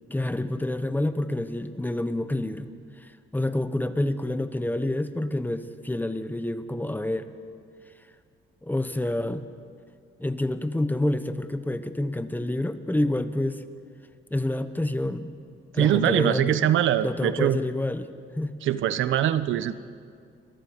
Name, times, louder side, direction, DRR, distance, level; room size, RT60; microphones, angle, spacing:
voice 1, 0.1-2.7 3.0-7.3 8.6-9.4 10.2-13.6 14.3-15.3 15.7-16.7 17.0-18.1 18.3-18.6, left 1 dB, 10° left, 10 dB, 1.2 m, -28 dB
voice 2, 15.8-17.6 18.6-19.7, right 11 dB, 80° right, 13 dB, 0.9 m, -23 dB
29.5 x 22.5 x 5.3 m, 2.2 s
cardioid pair, 90°, 20 cm